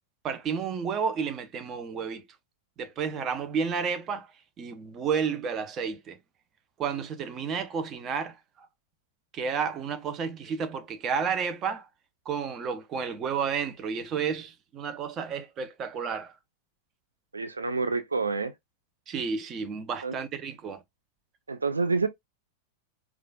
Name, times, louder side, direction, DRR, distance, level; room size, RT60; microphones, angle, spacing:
voice 1, 0.2-2.2 2.8-4.3 4.6-6.2 6.8-8.4 9.3-11.9 12.3-16.3 19.1-20.8, right 6 dB, 30° right, 0.6 m, -31 dB
voice 2, 17.3-18.5 20.0-20.2 21.5-22.1, right 4 dB, 80° right, 0.4 m, -28 dB
4.8 x 2.4 x 2.3 m
figure-of-eight pair, 90°, 0 cm